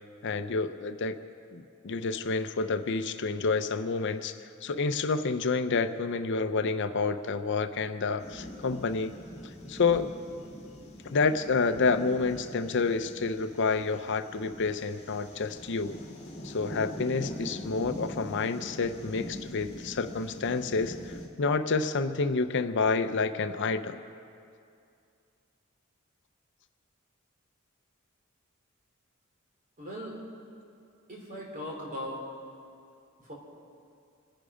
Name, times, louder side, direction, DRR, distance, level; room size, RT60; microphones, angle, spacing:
voice 1, 0.2-1.2 1.5-9.1 9.7-10.1 11.0-16.0 16.4-24.0, left 4 dB, 60° left, 9 dB, 0.6 m, -29 dB
sound 1, 8.2-21.3, left 1 dB, 35° left, 2.0 m, -43 dB
voice 2, 29.8-30.2 31.1-32.2 33.2-33.3, equal, 40° right, -2 dB, 3.7 m, -38 dB
26.5 x 10.5 x 5.0 m, 2.5 s
head